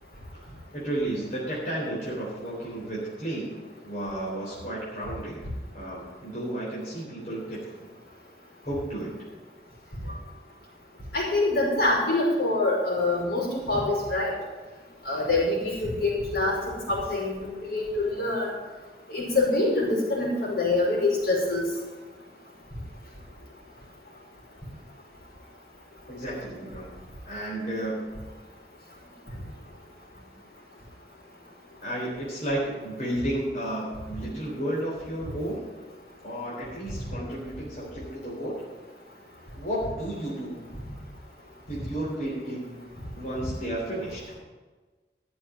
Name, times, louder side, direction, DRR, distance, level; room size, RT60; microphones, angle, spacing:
voice 1, 0.4-3.6 3.8-5.4 5.7-7.6 8.6-9.1 26.1-26.9 27.3-28.2 31.8-35.7 36.2-38.6 39.5-40.6 41.7-42.8 43.2-44.2, right 1 dB, 45° left, -7 dB, 3.9 m, -32 dB
voice 2, 11.1-14.3 15.1-18.5 19.1-21.6, left 2 dB, 70° left, -4 dB, 5.5 m, -25 dB
14.0 x 7.1 x 7.8 m, 1.3 s
head